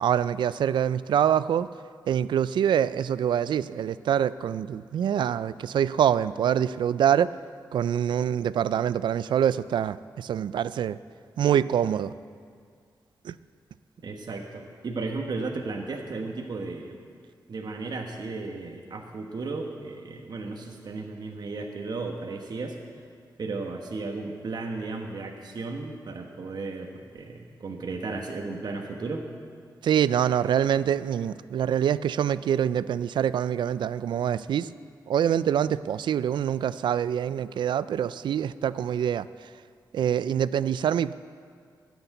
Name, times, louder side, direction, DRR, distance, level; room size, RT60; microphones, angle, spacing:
voice 1, 0.0-1.7 2.1-7.3 7.7-11.0 11.4-12.1 13.2-13.3 29.8-34.7 35.1-39.3 39.9-41.1, right 9 dB, 85° right, 16 dB, 0.3 m, -25 dB
voice 2, 14.0-16.9 17.5-22.8 23.4-29.2, right 3 dB, 65° right, 2 dB, 1.2 m, -34 dB
13.5 x 7.1 x 9.1 m, 2.1 s
cardioid pair, 65°, 8 cm